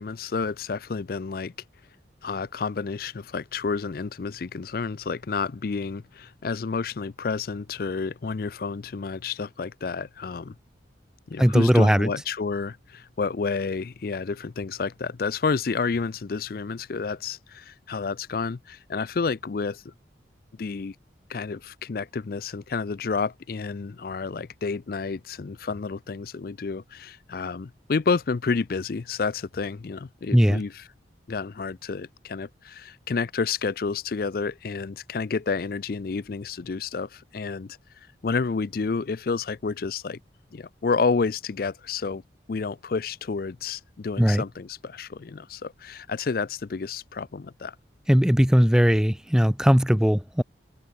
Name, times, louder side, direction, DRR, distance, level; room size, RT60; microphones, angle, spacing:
voice 1, 0.0-1.5 2.2-10.6 11.3-19.9 20.6-20.9 21.3-30.8 31.3-37.8 38.2-40.2 40.5-42.2 42.5-47.8, left 4 dB, 50° left, 0.4 m, -30 dB
voice 2, 11.4-12.1 30.3-30.6 44.2-44.4 48.1-50.4, equal, 5° right, 0.6 m, -19 dB
head